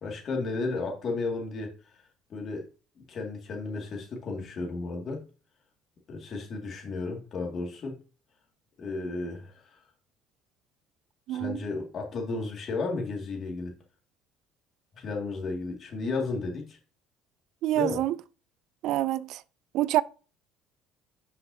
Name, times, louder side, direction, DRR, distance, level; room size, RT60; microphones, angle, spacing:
voice 1, 0.0-2.0 2.3-2.7 3.1-5.2 6.1-8.0 8.8-9.8 11.3-13.7 14.9-16.8 17.7-18.0, left 3 dB, 45° left, 2.1 m, -33 dB
voice 2, 11.3-11.6 17.6-18.2 18.8-19.4 19.7-20.0, right 14 dB, 70° right, 0.4 m, -26 dB
10.5 x 5.7 x 2.7 m
supercardioid pair, 100°, 0 cm